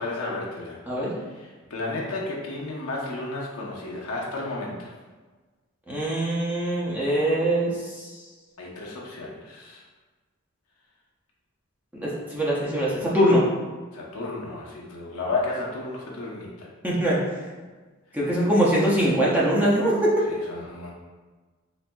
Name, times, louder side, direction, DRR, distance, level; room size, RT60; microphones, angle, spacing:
voice 1, 0.0-0.8 1.1-4.9 8.6-9.8 13.9-16.7 20.3-20.9, left 2 dB, 90° left, -3 dB, 0.7 m, -33 dB
voice 2, 5.9-8.1 11.9-13.4 16.8-17.2 18.1-20.1, right 1 dB, 10° right, -6 dB, 0.6 m, -22 dB
4.1 x 2.6 x 2.2 m, 1.3 s
head